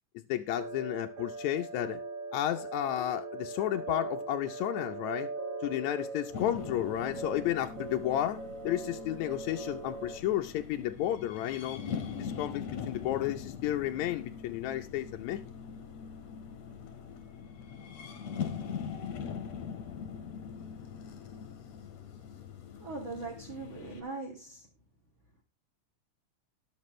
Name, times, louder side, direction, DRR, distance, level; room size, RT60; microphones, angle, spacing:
voice 1, 0.3-2.0 2.3-5.3 5.6-11.8 12.2-15.4, left 12 dB, 70° left, 2.0 m, -32 dB
sound 1, 0.6-10.2, right 3 dB, 90° right, 4.0 m, -41 dB
sound 2, 6.3-24.0, left 7 dB, 55° left, 2.7 m, -42 dB
voice 2, 22.8-24.6, right 3 dB, 40° right, 3.2 m, -40 dB
20.5 x 6.8 x 3.2 m
omnidirectional pair, 3.7 m